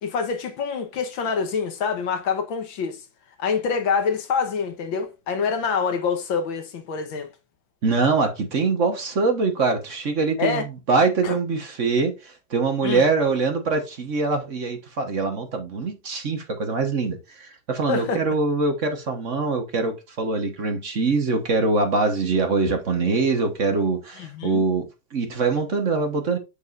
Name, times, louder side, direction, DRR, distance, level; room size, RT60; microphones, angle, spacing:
voice 1, 0.0-3.0 3.4-7.3 10.4-10.7 11.2-11.3 12.8-13.0 17.9-18.2 24.2-24.6, left 5 dB, 70° left, 1.8 m, -26 dB
voice 2, 7.8-24.9 25.1-26.4, right 4 dB, 40° right, 1.4 m, -23 dB
7.0 x 6.9 x 2.5 m
omnidirectional pair, 2.2 m